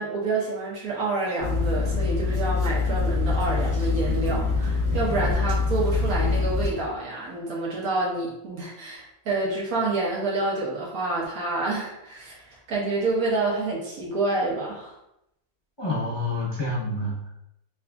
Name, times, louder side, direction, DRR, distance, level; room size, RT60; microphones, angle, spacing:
voice 1, 0.0-14.9, right 2 dB, 65° right, -4 dB, 1.5 m, -28 dB
sound 1, 1.4-6.7, left 4 dB, 25° right, 0.4 m, -24 dB
voice 2, 15.8-17.3, left 2 dB, 25° left, -7 dB, 0.7 m, -28 dB
6.0 x 2.4 x 2.3 m, 0.84 s
omnidirectional pair, 1.6 m